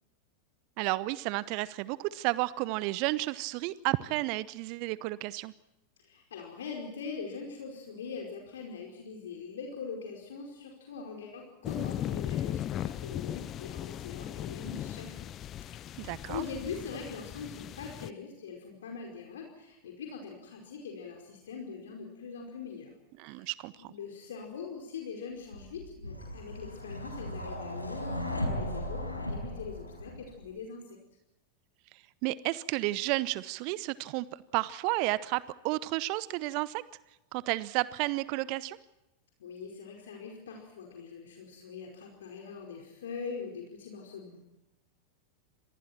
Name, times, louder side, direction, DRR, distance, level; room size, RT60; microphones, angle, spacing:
voice 1, 0.8-5.5 16.0-16.4 23.2-23.9 32.2-36.8 37.3-38.8, right 19 dB, 45° right, 19 dB, 0.8 m, -32 dB
voice 2, 6.0-15.4 15.6-22.9 23.3-23.5 23.8-31.0 39.4-44.4, left 5 dB, 60° left, 2 dB, 4.9 m, -42 dB
sound 1, 11.6-18.1, left 11 dB, 30° left, 0.7 m, -37 dB
sound 2, 25.5-30.4, left 1 dB, 85° left, 5.4 m, -36 dB
29.5 x 26.5 x 4.4 m, 0.94 s
figure-of-eight pair, 90°, 0 cm